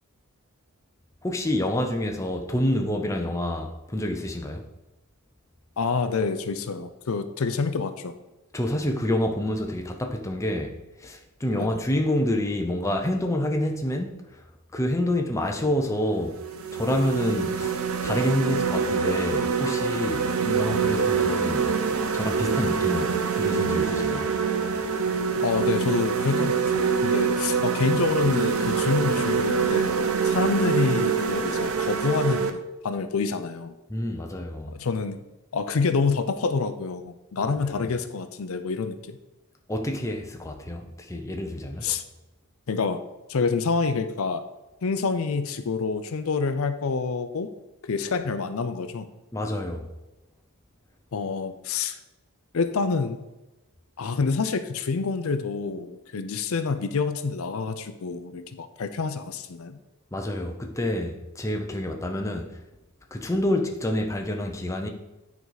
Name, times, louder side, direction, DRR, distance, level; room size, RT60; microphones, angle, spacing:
voice 1, 1.2-4.7 8.5-14.5 14.7-16.4 16.7-21.7 22.0-24.3 33.9-34.8 37.4-37.9 39.7-41.9 49.3-49.9 60.1-62.5 63.1-64.9, left 1 dB, 15° left, 0.6 m, -28 dB
voice 2, 5.8-8.1 11.5-11.7 20.4-21.1 25.4-29.9 30.2-33.8 34.7-35.2 35.5-39.2 41.8-42.0 42.7-43.0 43.3-44.4 44.8-47.5 47.8-49.1 51.1-52.0 52.5-53.2 54.0-59.8, left 4 dB, 70° left, 0.5 m, -27 dB
sound 1, 15.6-15.8 16.3-32.5, right 6 dB, 70° right, 0.7 m, -25 dB
9.5 x 4.7 x 4.0 m
head